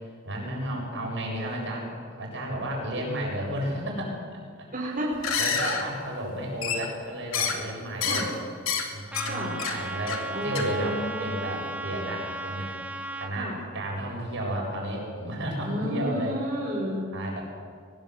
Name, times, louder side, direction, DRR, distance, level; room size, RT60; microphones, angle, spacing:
voice 1, 0.2-4.7 5.4-8.3 8.9-16.4 17.1-17.4, right 1 dB, 65° right, -1 dB, 7.7 m, -32 dB
voice 2, 4.7-5.1 8.1-8.3 9.3-9.5 10.3-11.4 13.3-13.5 15.6-17.0, equal, 40° right, -5 dB, 5.0 m, -31 dB
sound 1, 5.1-5.8 6.6-7.0 7.3-7.6 8.0-8.3 8.6-8.9 9.1-9.3 9.6-9.8 10.1-10.3 10.6-10.7, left 6 dB, 85° left, 2.7 m, -28 dB
Trumpet, 9.1-13.3, right 2 dB, 5° right, 1.5 m, -36 dB
23.0 x 20.0 x 8.1 m, 2.1 s
head